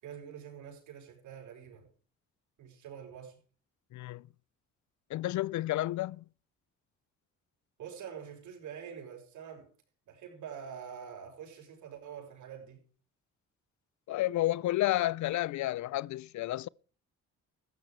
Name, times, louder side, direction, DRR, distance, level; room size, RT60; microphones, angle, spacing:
voice 1, 0.0-1.9 2.6-3.4 7.8-9.7 10.1-12.8, right 8 dB, 80° right, 6.9 m, -46 dB
voice 2, 3.9-4.2 5.1-6.2 14.1-16.7, left 15 dB, 70° left, 0.5 m, -31 dB
15.5 x 13.0 x 3.3 m
cardioid pair, 90°, 30 cm